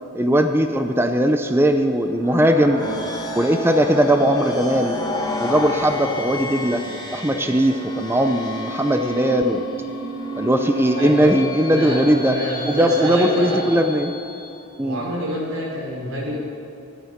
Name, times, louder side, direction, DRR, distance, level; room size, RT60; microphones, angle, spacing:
voice 1, 0.1-2.8 3.4-5.0 5.4-6.8 7.1-9.6 10.4-12.4 12.7-14.1 14.8-15.0, right 1 dB, 10° right, 6 dB, 0.6 m, -19 dB
sound 1, 2.1-14.6, left 1 dB, 20° left, 1.5 m, -31 dB
voice 2, 2.7-3.0 11.0-11.4 11.7-13.7 14.8-16.4, equal, 90° right, -3 dB, 4.4 m, -27 dB
24.0 x 9.3 x 5.2 m, 2.7 s
head